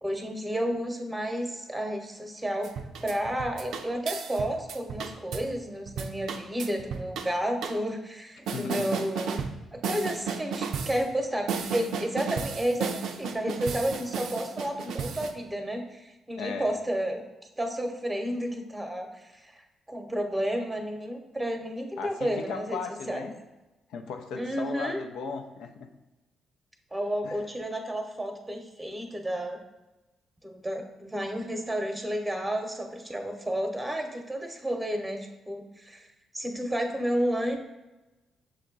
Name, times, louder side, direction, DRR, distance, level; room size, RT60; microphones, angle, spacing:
voice 1, 0.0-2.7 3.0-9.4 9.7-17.2 17.6-22.8 23.1-23.3 24.4-25.0 26.9-29.6 30.4-36.1 36.3-37.7, equal, 10° right, 4 dB, 0.9 m, -31 dB
sound 1, 2.6-5.5 5.9-7.3 7.6-7.8 8.5-9.6 9.8-11.0 11.5-15.3, right 6 dB, 70° right, 0.4 m, -33 dB
voice 2, 8.5-8.9 16.4-16.7 22.0-23.3 23.9-25.9 27.2-27.4, left 5 dB, 70° left, 4 dB, 0.5 m, -36 dB
6.1 x 2.2 x 3.8 m, 1.1 s
hypercardioid pair, 40°, 0 cm